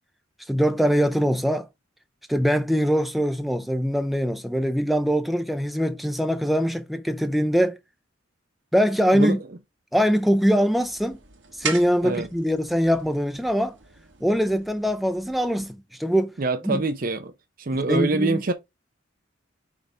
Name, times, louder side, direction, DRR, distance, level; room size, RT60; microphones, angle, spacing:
voice 1, 0.5-1.7 2.3-7.8 8.7-9.4 9.9-11.2 11.6-13.7 14.2-16.3 16.6-16.8 17.7-18.4, equal, ahead, 0.6 m, -22 dB
sound 1, 10.7-15.7, right 6 dB, 65° right, 1.6 m, -39 dB
voice 2, 16.4-17.3 17.6-18.5, right 3 dB, 45° right, 0.5 m, -24 dB
6.4 x 3.4 x 5.0 m
head